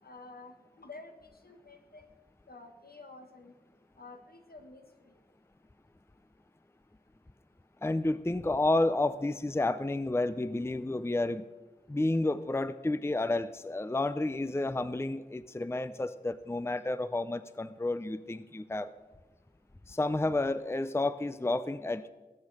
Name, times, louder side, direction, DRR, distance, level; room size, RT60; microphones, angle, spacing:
voice 1, 0.0-2.1 2.5-3.5 4.0-5.2, left 3 dB, 80° left, 5 dB, 1.5 m, -50 dB
voice 2, 7.8-11.4 11.9-18.9 19.9-22.1, left 2 dB, 15° left, 14 dB, 0.5 m, -30 dB
20.0 x 8.5 x 4.9 m, 1.2 s
wide cardioid pair, 55°, 16 cm